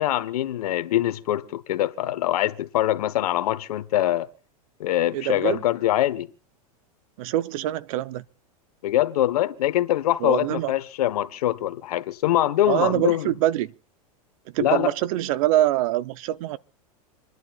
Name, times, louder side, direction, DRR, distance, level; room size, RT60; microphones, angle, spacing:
voice 1, 0.0-4.3 4.8-6.3 8.8-13.3 14.6-14.9, left 13 dB, 75° left, 1.2 m, -23 dB
voice 2, 5.1-5.6 7.2-8.2 10.2-10.7 12.7-13.7 14.5-16.6, right 14 dB, 65° right, 0.7 m, -24 dB
28.0 x 11.0 x 2.4 m
hypercardioid pair, 115°, 19 cm